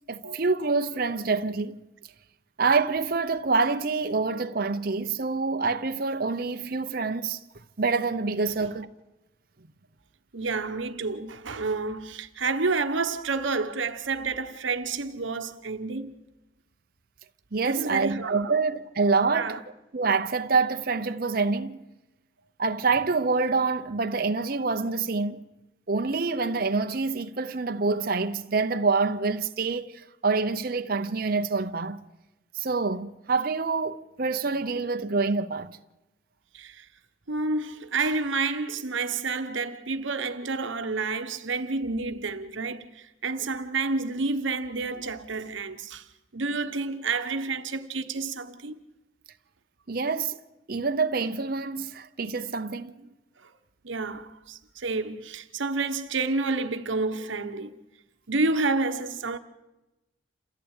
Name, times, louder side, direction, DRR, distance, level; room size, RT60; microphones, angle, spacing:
voice 1, 0.1-1.8 2.6-7.4 7.8-8.9 17.5-19.6 19.9-21.8 22.6-25.4 25.9-32.0 32.5-35.8 49.9-50.4 50.7-53.1, right 4 dB, 50° right, 0.8 m, -26 dB
voice 2, 10.3-16.1 17.6-18.6 19.3-19.6 36.5-36.9 37.3-46.1 46.3-48.8 53.4-53.5 53.8-57.7 58.3-59.4, right 3 dB, 75° right, 1.1 m, -29 dB
28.0 x 15.0 x 8.9 m
head